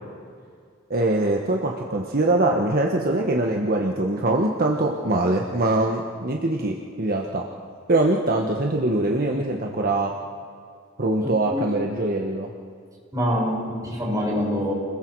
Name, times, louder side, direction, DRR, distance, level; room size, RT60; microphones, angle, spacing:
voice 1, 0.9-7.4 7.9-10.1 11.0-12.5, right 2 dB, 45° right, 1 dB, 1.4 m, -23 dB
voice 2, 11.2-11.7 13.1-14.7, equal, 20° right, -5 dB, 7.1 m, -25 dB
30.0 x 21.5 x 4.8 m, 2.2 s
head